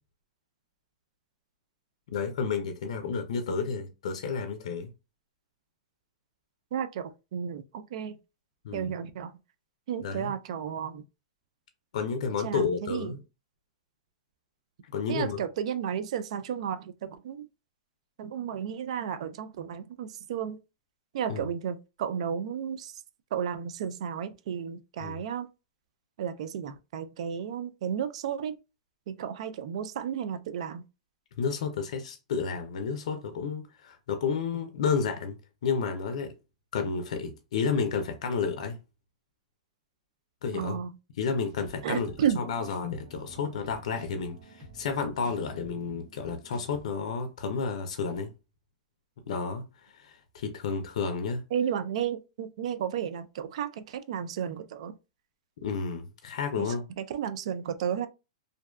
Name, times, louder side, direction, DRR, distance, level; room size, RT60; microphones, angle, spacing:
voice 1, 2.1-4.9 8.6-8.9 10.0-10.3 11.9-13.2 14.9-15.4 21.3-21.4 25.0-25.2 31.4-35.4 35.6-36.3 36.7-38.8 40.4-40.8 41.2-42.1 42.4-48.3 49.3-49.6 49.9-51.4 55.6-56.8, left 5 dB, 70° left, 0.4 m, -31 dB
voice 2, 6.7-8.2 8.7-9.3 9.9-11.0 12.4-13.1 15.1-17.5 18.2-20.6 21.1-23.0 23.3-25.5 26.2-28.5 29.1-30.8 40.5-40.9 41.8-42.4 51.5-54.9 56.6-58.1, right 8 dB, 65° right, 0.3 m, -33 dB
sound 1, 41.5-46.8, right 1 dB, 35° right, 0.8 m, -50 dB
2.5 x 2.2 x 2.2 m
hypercardioid pair, 130°, 4 cm